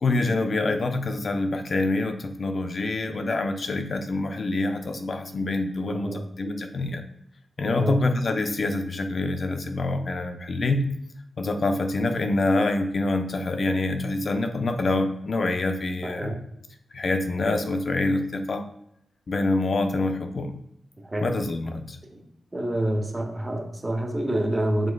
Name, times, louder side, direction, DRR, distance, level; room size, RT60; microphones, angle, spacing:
voice 1, 0.0-7.1 7.6-10.8 11.4-16.3 16.9-18.6 19.3-20.6 21.2-22.0, left 2 dB, 40° left, 7 dB, 0.4 m, -26 dB
voice 2, 5.9-6.2 7.8-8.1 16.0-16.4 21.0-21.3 22.1-22.2 22.5-24.9, right 1 dB, 15° right, 3 dB, 0.6 m, -27 dB
5.0 x 3.6 x 2.2 m, 0.76 s
wide cardioid pair, 160°, 0 cm